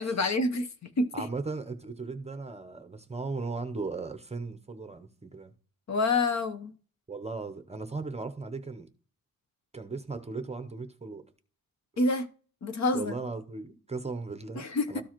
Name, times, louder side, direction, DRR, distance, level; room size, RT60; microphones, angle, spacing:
voice 1, 0.0-1.3 5.9-6.7 12.0-12.3 12.6-13.2 14.6-15.0, left 2 dB, 50° left, 0.9 m, -28 dB
voice 2, 1.1-5.5 7.1-8.9 9.7-11.2 12.9-15.0, right 3 dB, 20° right, 0.7 m, -37 dB
13.0 x 4.6 x 2.9 m
wide cardioid pair, 140°, 35 cm